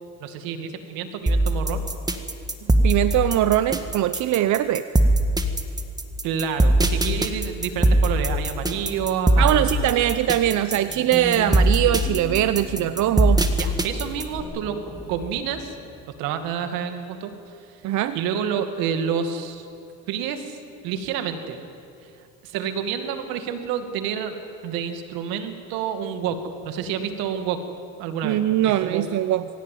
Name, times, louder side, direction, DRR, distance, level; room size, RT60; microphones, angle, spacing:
voice 1, 0.2-1.8 6.2-9.9 13.6-14.8 15.1-15.7 16.2-17.8 18.1-19.7 20.1-20.6 20.8-21.6 22.4-24.4 24.6-26.4 26.6-27.6 28.0-28.4 28.8-29.1, right 7 dB, 80° right, 7 dB, 2.4 m, -28 dB
sound 1, 1.3-14.4, right 1 dB, 10° right, 1.8 m, -21 dB
voice 2, 2.8-4.8 9.4-13.4 17.8-18.2 28.2-29.5, right 12 dB, 55° right, 12 dB, 0.8 m, -21 dB
sound 2, 10.7-15.8, left 1 dB, 10° left, 3.0 m, -37 dB
23.5 x 16.0 x 9.4 m, 2.5 s
supercardioid pair, 100°, 35 cm